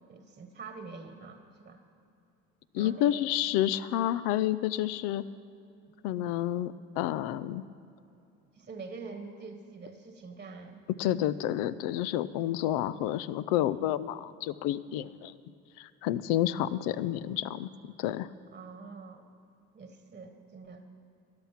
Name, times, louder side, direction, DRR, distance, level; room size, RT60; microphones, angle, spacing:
voice 1, 0.1-1.8 2.7-3.3 8.5-10.8 18.5-19.3 19.7-20.8, right 4 dB, 25° right, 6 dB, 1.2 m, -45 dB
voice 2, 2.7-5.2 6.0-7.6 11.0-15.3 15.8-17.7 18.0-18.3, left 12 dB, 85° left, 16 dB, 0.5 m, -29 dB
13.0 x 11.5 x 5.9 m, 2.6 s
supercardioid pair, 95°, 31 cm